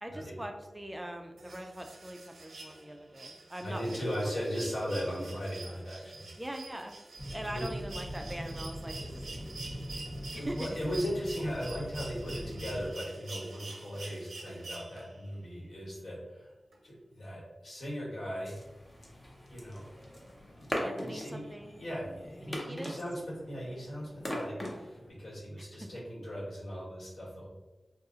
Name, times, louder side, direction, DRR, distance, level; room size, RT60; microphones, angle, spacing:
voice 1, 0.0-4.3 6.4-6.9 7.3-9.4 9.7-9.9 10.3-10.8 20.8-21.7 22.4-23.0 25.6-25.9, right 1 dB, 15° right, 4 dB, 0.3 m, -42 dB
sound 1, 1.4-15.3 16.7-16.8, right 3 dB, 75° right, 0.5 m, -47 dB
voice 2, 3.6-6.3 7.5-7.7 10.4-16.5 16.8-18.6 19.5-19.9 20.6-27.5, equal, 85° left, -6 dB, 1.3 m, -38 dB
sound 2, 7.2-12.9, equal, 60° left, 1.4 m, -41 dB
sound 3, 18.4-25.1, equal, 20° left, 0.7 m, -41 dB
2.6 x 2.4 x 3.7 m, 1.1 s
wide cardioid pair, 95°, 0 cm